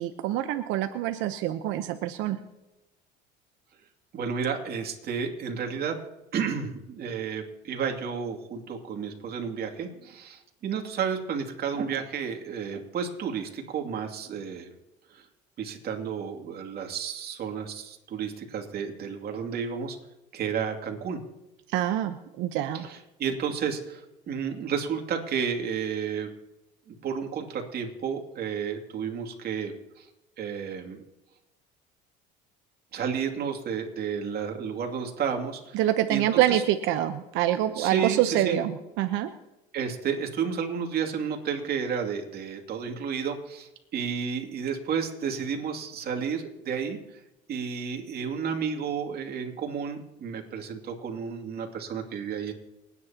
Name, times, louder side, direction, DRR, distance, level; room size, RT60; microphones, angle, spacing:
voice 1, 0.0-2.4 21.7-22.9 35.7-39.3, right 12 dB, 70° right, 8 dB, 0.9 m, -26 dB
voice 2, 4.1-6.0 6.3-14.7 15.1-15.3 15.6-20.0 20.3-21.2 22.7-26.3 26.9-30.1 30.4-31.0 32.9-35.8 36.1-36.6 37.7-38.6 39.7-47.0 47.5-52.5, right 6 dB, 50° right, 2 dB, 2.6 m, -32 dB
29.0 x 9.7 x 2.9 m, 0.97 s
supercardioid pair, 95°, 20 cm